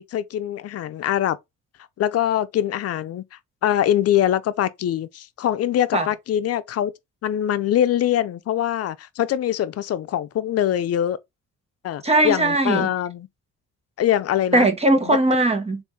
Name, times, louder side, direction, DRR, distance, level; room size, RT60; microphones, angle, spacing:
voice 1, 0.0-1.4 2.0-3.2 3.6-6.9 7.2-11.2 11.8-13.3 14.0-14.7 15.1-15.2, left 11 dB, 55° left, 0.5 m, -23 dB
voice 2, 12.0-12.9 14.5-15.8, right 2 dB, 20° right, 1.0 m, -19 dB
3.4 x 2.6 x 4.3 m
cardioid pair, 90°, 30 cm